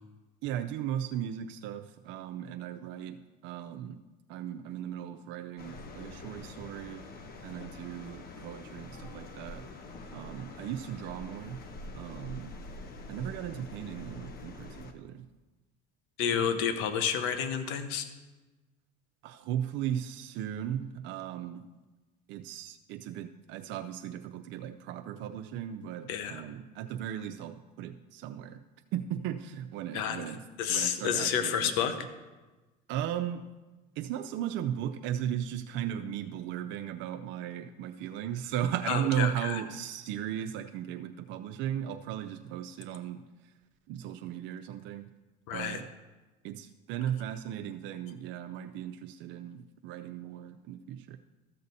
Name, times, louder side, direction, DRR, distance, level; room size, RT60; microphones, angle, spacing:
voice 1, 0.4-4.0 4.3-7.1 7.4-9.7 10.1-11.6 11.9-12.5 13.1-15.2 16.3-16.6 19.2-21.7 22.3-28.6 28.9-30.4 30.7-31.9 32.9-33.5 34.0-43.5 43.9-45.1 45.5-45.9 46.4-51.2, right 10 dB, 65° right, 7 dB, 0.5 m, -36 dB
sound 1, 5.6-14.9, left 2 dB, 50° left, 1.1 m, -45 dB
voice 2, 16.2-18.1 26.1-26.4 29.9-30.2 30.6-31.9 38.9-39.6 45.5-45.8, left 8 dB, 75° left, 9 dB, 1.1 m, -30 dB
13.5 x 6.6 x 4.1 m, 1.2 s
supercardioid pair, 100°, 20 cm